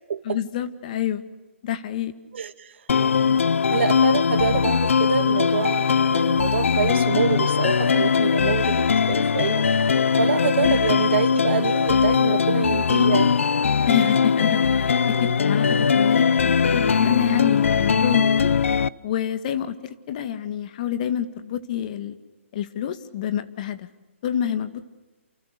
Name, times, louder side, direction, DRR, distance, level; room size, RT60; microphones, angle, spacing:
voice 1, 0.2-1.2 1.6-2.1 2.9-3.0 10.7-11.0 13.9-18.6 19.0-22.1 22.5-23.9 24.2-24.8, left 10 dB, 35° left, 1.9 m, -27 dB
sound 1, 2.9-18.9, left 6 dB, 70° left, 0.9 m, -20 dB
voice 2, 3.7-9.7 10.2-13.4, right 7 dB, 55° right, 2.0 m, -26 dB
29.5 x 28.5 x 6.8 m
hypercardioid pair, 160°, 7 cm